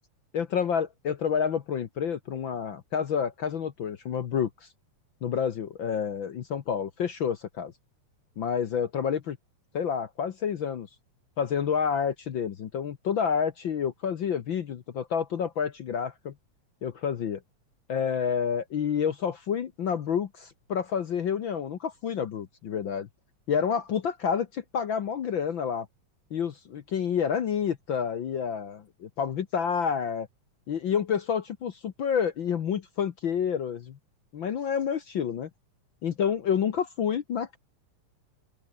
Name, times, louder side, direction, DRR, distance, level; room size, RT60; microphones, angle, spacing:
voice 1, 0.3-4.7 5.2-7.7 8.4-9.4 9.7-10.9 11.4-16.3 16.8-17.4 17.9-23.1 23.5-25.9 26.3-30.3 30.7-34.0 34.3-35.5 36.0-37.6, left 7 dB, 55° left, 1.4 m, -29 dB
open air
omnidirectional pair, 3.3 m